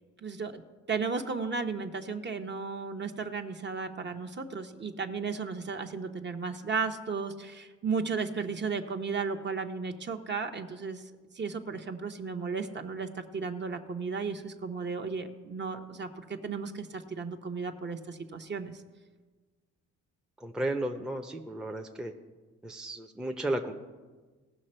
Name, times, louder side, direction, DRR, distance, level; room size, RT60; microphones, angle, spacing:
voice 1, 0.2-0.6 0.9-11.0 11.3-18.8, right 5 dB, 35° right, 6 dB, 0.9 m, -34 dB
voice 2, 20.4-22.1 22.6-23.7, right 1 dB, ahead, 4 dB, 0.7 m, -33 dB
17.5 x 5.9 x 4.4 m, 1.3 s
cardioid pair, 90°, 30 cm